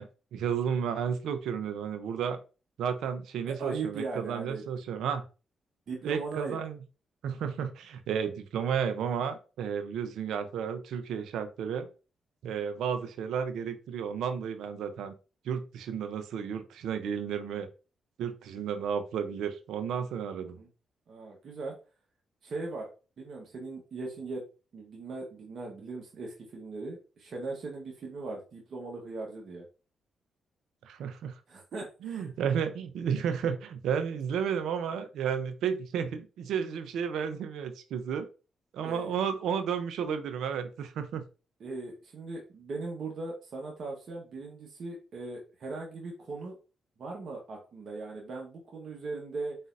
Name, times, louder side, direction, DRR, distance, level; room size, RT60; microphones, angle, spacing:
voice 1, 0.0-2.4 2.8-5.2 6.0-6.8 7.2-11.9 12.4-15.1 15.4-17.7 18.2-20.6 30.8-31.3 32.0-38.3 38.7-41.2, right 7 dB, 80° right, 9 dB, 0.6 m, -32 dB
voice 2, 3.6-4.6 5.9-6.6 20.4-20.7 21.1-21.7 22.4-22.9 23.2-24.4 24.7-29.6 31.5-32.3 38.8-39.1 41.6-46.5 47.0-49.6, right 3 dB, 60° right, -1 dB, 1.2 m, -39 dB
4.1 x 3.9 x 2.6 m, 0.33 s
supercardioid pair, 55°, 0 cm